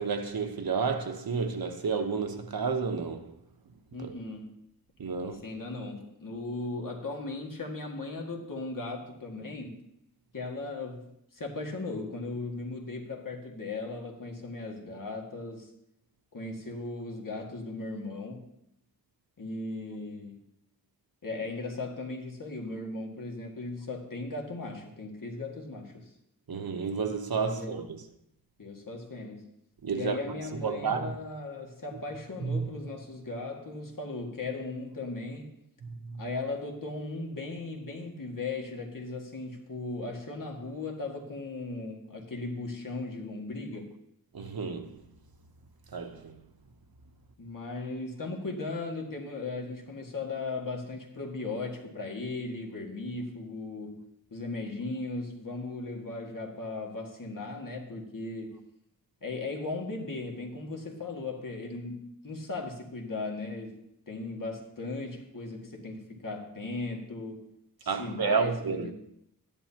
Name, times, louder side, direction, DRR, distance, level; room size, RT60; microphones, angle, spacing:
voice 1, 0.0-3.3 4.0-4.1 5.0-5.4 26.5-28.1 29.8-31.2 31.9-32.0 32.4-32.7 35.8-36.4 44.3-45.0 45.9-46.4 67.9-68.9, right 5 dB, 80° right, 1.0 m, -31 dB
voice 2, 3.9-4.6 5.2-9.8 10.3-11.1 11.3-15.7 16.3-18.5 19.4-20.4 21.2-26.1 27.5-27.8 28.6-29.5 29.9-35.5 36.2-43.9 47.4-54.1 54.3-58.6 59.2-63.8 64.1-67.5 67.8-68.9, left 3 dB, 60° left, 2.0 m, -37 dB
13.5 x 10.5 x 2.9 m
wide cardioid pair, 85°, 36 cm